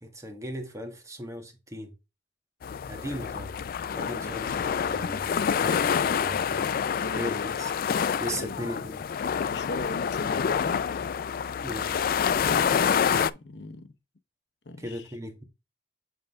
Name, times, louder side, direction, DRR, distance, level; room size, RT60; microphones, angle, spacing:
voice 1, 0.0-1.9 2.9-3.5 3.9-6.6 7.1-7.7 8.2-9.0 11.6-11.9 14.8-15.4, equal, 20° right, 1.5 m, -37 dB
sound 1, 2.6-13.3, left 7 dB, 55° left, 0.3 m, -27 dB
voice 2, 4.0-4.5 7.0-7.6 8.3-8.6 9.4-10.9 13.3-13.9 14.6-15.1, left 2 dB, 80° left, 0.8 m, -39 dB
7.8 x 3.8 x 3.6 m
head